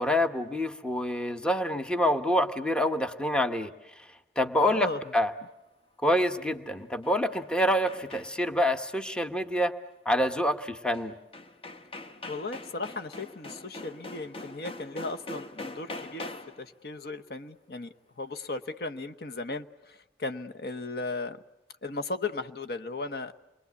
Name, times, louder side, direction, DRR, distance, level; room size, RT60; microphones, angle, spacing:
voice 1, 0.0-3.7 4.4-5.3 6.0-9.7 10.0-11.1, left 1 dB, 5° left, 8 dB, 1.0 m, -26 dB
voice 2, 4.6-5.0 12.3-16.3 16.6-21.4 21.8-23.3, left 3 dB, 60° left, 8 dB, 1.0 m, -36 dB
sound 1, 6.8-8.6 10.9-11.0 11.3-16.7, left 2 dB, 30° left, 1.2 m, -43 dB
28.5 x 22.0 x 8.3 m, 1.0 s
head